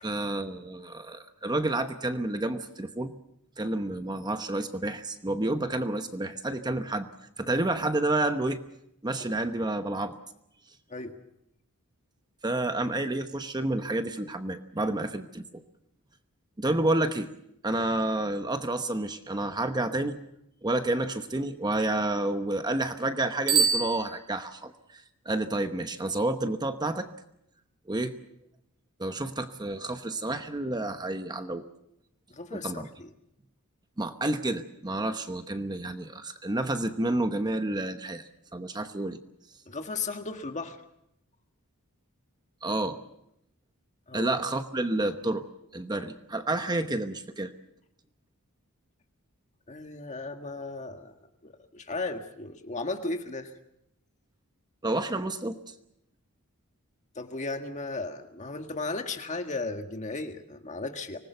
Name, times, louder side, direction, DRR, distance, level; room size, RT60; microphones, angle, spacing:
voice 1, 0.0-3.1 3.6-7.1 7.4-8.6 9.0-10.1 12.4-15.6 16.6-17.3 17.6-20.2 20.6-27.1 27.9-28.1 29.0-31.6 32.5-32.9 34.0-38.2 38.5-39.2 42.6-43.0 44.1-45.4 45.7-47.5 54.8-55.6, right 2 dB, 20° right, 8 dB, 1.0 m, -29 dB
Bicycle bell, 23.4-24.8, right 6 dB, 85° right, 6.5 m, -27 dB
voice 2, 32.3-33.1 39.7-40.8 44.1-44.4 49.7-51.1 51.4-53.5 57.1-61.2, left 3 dB, 35° left, 6 dB, 1.7 m, -35 dB
25.0 x 19.5 x 6.9 m, 0.78 s
head